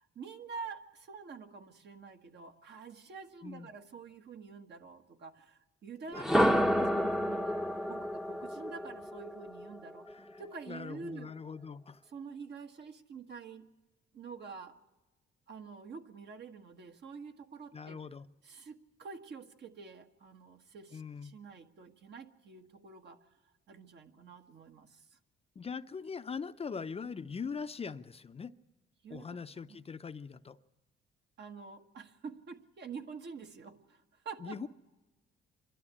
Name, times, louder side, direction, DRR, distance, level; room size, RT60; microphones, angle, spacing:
voice 1, 0.0-10.1 10.4-11.3 12.1-13.7 14.1-14.8 15.5-18.0 18.4-23.2 23.7-25.0 29.0-29.8 31.4-34.6, right 5 dB, 60° right, 5 dB, 1.6 m, -47 dB
sound 1, 6.1-10.1, equal, ahead, 0.7 m, -30 dB
voice 2, 10.1-10.4 10.7-12.0 17.7-18.3 20.9-21.3 25.6-28.5 29.1-30.6 34.4-34.7, left 5 dB, 30° left, 11 dB, 0.6 m, -41 dB
27.0 x 12.5 x 8.5 m, 1.1 s
cardioid pair, 90°, 20 cm